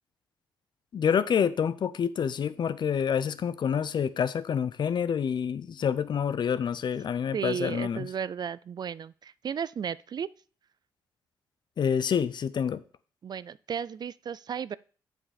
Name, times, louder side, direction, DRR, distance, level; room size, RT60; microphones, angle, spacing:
voice 1, 0.9-8.1 11.8-12.8, left 7 dB, 60° left, 0.6 m, -27 dB
voice 2, 7.3-10.3 13.2-14.8, right 7 dB, 50° right, 0.4 m, -34 dB
7.3 x 6.3 x 5.1 m
supercardioid pair, 55°, 9 cm